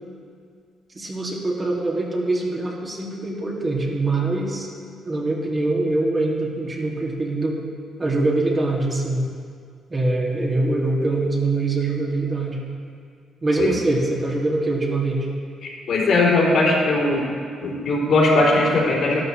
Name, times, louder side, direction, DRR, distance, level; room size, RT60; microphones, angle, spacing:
voice 1, 0.9-4.7 5.0-7.6 8.0-9.2 9.9-12.6 13.4-15.2, right 2 dB, 30° right, -3 dB, 2.1 m, -23 dB
voice 2, 15.6-17.3 17.6-19.2, left 2 dB, 70° left, -5 dB, 3.2 m, -19 dB
12.5 x 12.5 x 3.2 m, 2.2 s
cardioid pair, 90°, 0 cm